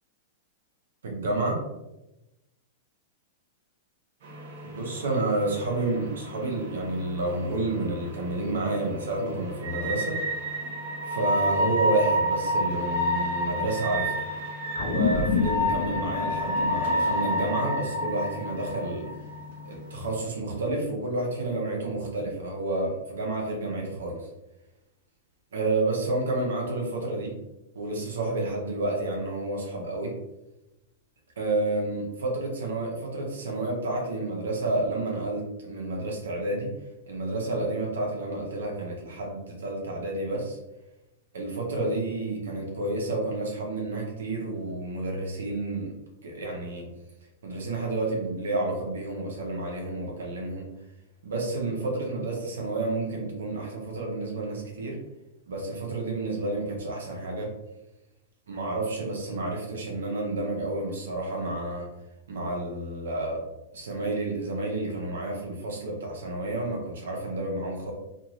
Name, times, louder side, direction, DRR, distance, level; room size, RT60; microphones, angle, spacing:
voice 1, 1.0-1.6 4.6-10.2 11.0-14.1 14.8-19.2 19.6-24.3 25.5-27.3 27.7-30.2 31.4-36.7 37.1-40.6 41.3-45.9 46.2-46.9 47.4-50.7 51.2-55.0 55.5-57.5 58.5-61.9 62.3-63.4 63.7-67.9, right 2 dB, 90° right, 0 dB, 0.9 m, -30 dB
sound 1, 4.2-20.2, equal, 65° right, 0.7 m, -30 dB
sound 2, 14.8-19.5, left 5 dB, 55° left, 0.4 m, -31 dB
2.6 x 2.5 x 3.0 m, 0.95 s
hypercardioid pair, 130°, 0 cm